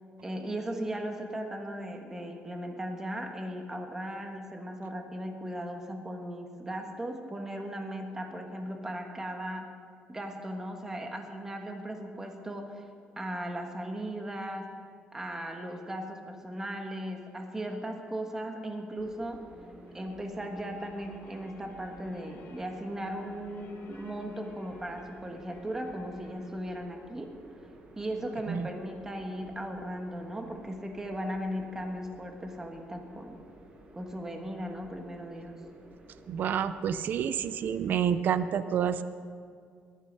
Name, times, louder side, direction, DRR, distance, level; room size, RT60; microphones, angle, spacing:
voice 1, 0.2-9.7 10.1-12.8 13.2-14.8 15.1-19.4 19.9-27.3 28.0-33.4 33.9-35.6, right 1 dB, 15° right, 3 dB, 1.4 m, -37 dB
sound 1, 18.9-38.2, right 2 dB, 30° right, 1.5 m, -53 dB
sound 2, 19.5-26.6, left 1 dB, 70° left, 3.0 m, -53 dB
voice 2, 36.3-39.0, right 8 dB, 50° right, 13 dB, 0.6 m, -28 dB
20.5 x 12.0 x 5.4 m, 2.2 s
cardioid pair, 170°, 4 cm